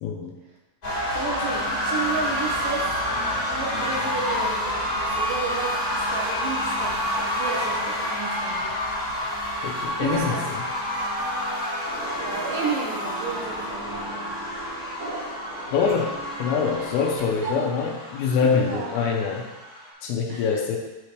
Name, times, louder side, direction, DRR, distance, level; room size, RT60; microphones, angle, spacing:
voice 1, 0.0-0.3 9.6-10.4 15.7-19.5 20.0-20.8, left 5 dB, 85° left, 1 dB, 2.5 m, -25 dB
sound 1, 0.8-19.9, left 1 dB, 30° left, 1.9 m, -28 dB
voice 2, 1.1-3.0 3.5-8.8 10.0-10.6 12.2-13.9 17.2-17.9 18.4-18.9 20.3-20.5, right 5 dB, 70° right, -2 dB, 2.3 m, -32 dB
sound 2, 11.8-17.4, right 3 dB, 30° right, 2.4 m, -40 dB
9.5 x 4.4 x 3.2 m, 1.1 s
omnidirectional pair, 4.6 m